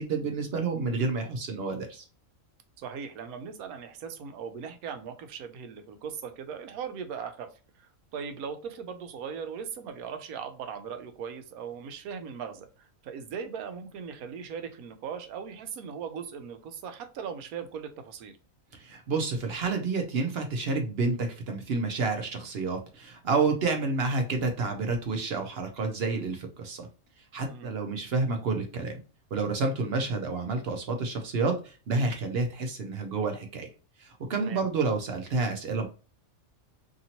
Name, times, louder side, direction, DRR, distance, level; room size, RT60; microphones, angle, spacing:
voice 1, 0.0-2.1 18.7-26.9 27.3-29.0 29.3-33.7 34.0-35.9, right 3 dB, 60° right, 4 dB, 0.7 m, -29 dB
voice 2, 2.8-7.5 7.8-18.4 27.5-27.7 34.4-34.6, right 7 dB, 90° right, 8 dB, 1.1 m, -39 dB
2.9 x 2.8 x 2.7 m, 0.34 s
omnidirectional pair, 1.5 m